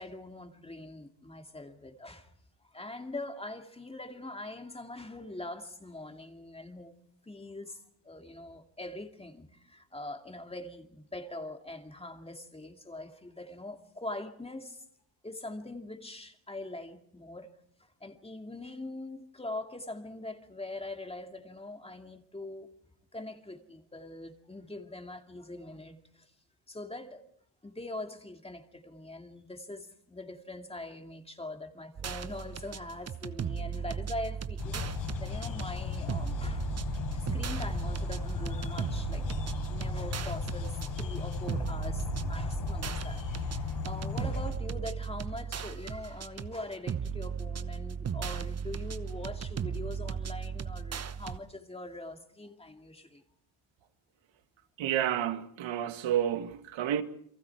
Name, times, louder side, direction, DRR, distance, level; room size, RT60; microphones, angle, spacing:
voice 1, 0.0-2.3 2.7-6.9 7.3-14.8 15.2-17.5 18.0-22.7 23.1-26.3 26.7-27.2 27.6-34.9 35.2-36.7 37.1-39.4 39.7-43.2 43.5-53.2, left 2 dB, 10° left, 2.3 m, -42 dB
sound 1, 32.0-51.4, right 7 dB, 30° right, 1.1 m, -37 dB
sound 2, 34.6-44.5, left 4 dB, 65° left, 7.0 m, -36 dB
voice 2, 54.8-57.0, right 10 dB, 75° right, 2.0 m, -30 dB
29.5 x 23.5 x 4.7 m
cardioid pair, 100°, 47 cm